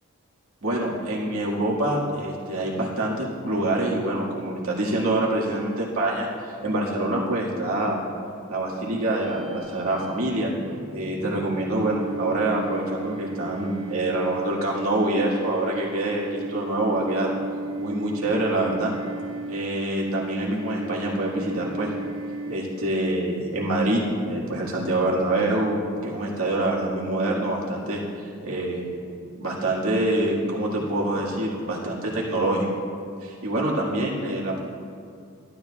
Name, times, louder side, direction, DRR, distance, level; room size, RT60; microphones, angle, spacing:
voice 1, 0.6-8.0 8.5-10.5 10.9-17.3 17.8-18.9 19.5-21.9 22.5-28.8 29.4-32.7 33.2-34.6, right 1 dB, 75° right, -4 dB, 2.0 m, -26 dB
sound 1, 9.0-23.0, right 2 dB, 25° right, 0.6 m, -35 dB
14.5 x 12.0 x 2.4 m, 2.3 s
head